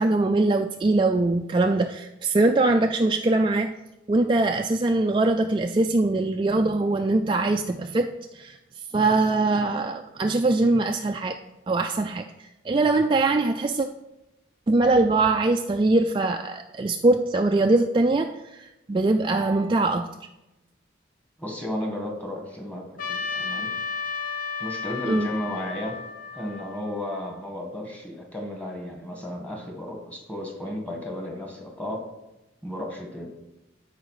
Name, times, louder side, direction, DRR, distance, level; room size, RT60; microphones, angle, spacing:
voice 1, 0.0-3.7 4.1-8.6 8.9-11.4 11.7-13.9 14.7-20.1 25.1-25.3, right 2 dB, 25° right, 5 dB, 0.3 m, -22 dB
voice 2, 21.4-23.7 24.6-26.0 26.3-32.0 32.6-33.3, left 1 dB, 5° left, 1 dB, 1.6 m, -34 dB
Trumpet, 23.0-27.4, left 5 dB, 45° left, 1.0 m, -33 dB
13.0 x 4.9 x 4.8 m, 0.97 s
head